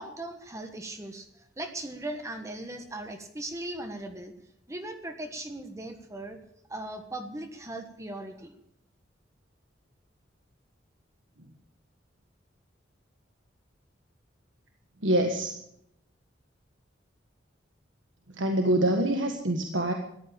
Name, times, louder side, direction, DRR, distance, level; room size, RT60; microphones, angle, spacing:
voice 1, 0.0-4.3 4.7-6.4 6.7-8.5, right 1 dB, 15° right, 5 dB, 1.3 m, -38 dB
voice 2, 15.0-15.5 18.4-19.9, right 1 dB, 90° right, 4 dB, 1.6 m, -25 dB
14.5 x 11.5 x 8.6 m, 0.75 s
head